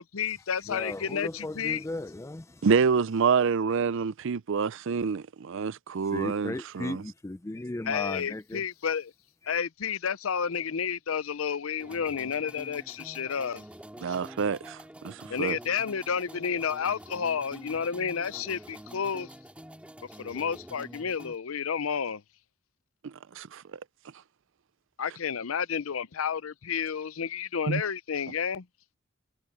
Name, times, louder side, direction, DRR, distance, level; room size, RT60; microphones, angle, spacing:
voice 1, 0.0-1.8 7.9-9.1 9.5-13.6 14.1-14.2 15.3-19.3 20.2-22.2 25.0-28.6, left 7 dB, 85° left, 0.6 m, -31 dB
voice 2, 0.7-2.7 6.1-8.6, left 2 dB, 15° left, 0.4 m, -36 dB
voice 3, 2.6-7.0 14.0-15.6 23.0-23.8 27.7-27.8, right 5 dB, 65° right, 0.5 m, -27 dB
sound 1, 11.8-21.4, right 1 dB, 5° right, 2.2 m, -47 dB
head